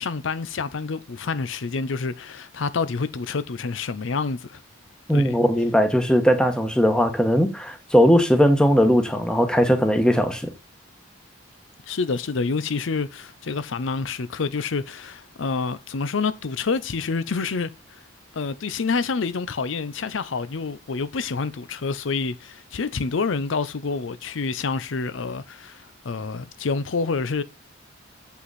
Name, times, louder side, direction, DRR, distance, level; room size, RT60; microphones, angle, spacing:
voice 1, 0.0-4.6 5.1-5.4 11.9-17.7 18.3-27.4, left 4 dB, 75° left, 0.6 m, -28 dB
voice 2, 5.1-10.5, equal, 5° left, 1.1 m, -19 dB
7.7 x 5.8 x 4.1 m
head